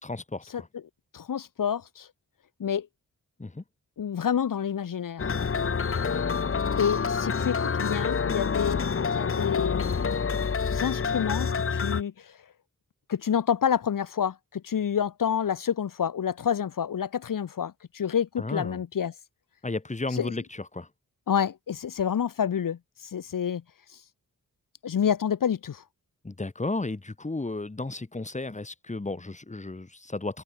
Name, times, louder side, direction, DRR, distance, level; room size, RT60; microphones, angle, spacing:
voice 1, 0.0-0.7 3.4-3.6 18.4-18.8 19.6-20.9 26.2-30.4, left 2 dB, 20° left, 4.5 m, -33 dB
voice 2, 1.1-2.1 2.6-2.9 4.0-5.3 6.7-9.9 10.7-12.4 13.1-19.1 20.1-20.3 21.3-23.6 24.8-25.8, left 8 dB, 75° left, 2.1 m, -28 dB
sound 1, 5.2-12.0, left 5 dB, 40° left, 1.5 m, -27 dB
wide cardioid pair, 120°, 33 cm